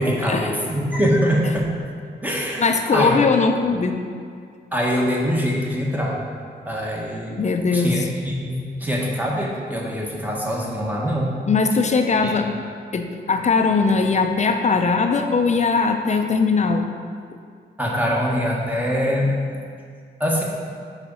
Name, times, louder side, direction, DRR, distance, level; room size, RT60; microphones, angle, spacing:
voice 1, 0.0-1.7 2.2-3.2 4.7-6.2 6.6-7.4 7.7-11.4 12.2-12.3 17.8-19.3 20.2-20.4, equal, 10° right, -3 dB, 1.3 m, -23 dB
voice 2, 2.6-3.9 7.4-8.0 11.5-12.5 12.9-16.9, left 4 dB, 40° left, 5 dB, 0.6 m, -20 dB
4.8 x 4.7 x 5.5 m, 2.2 s
cardioid pair, 70°, 18 cm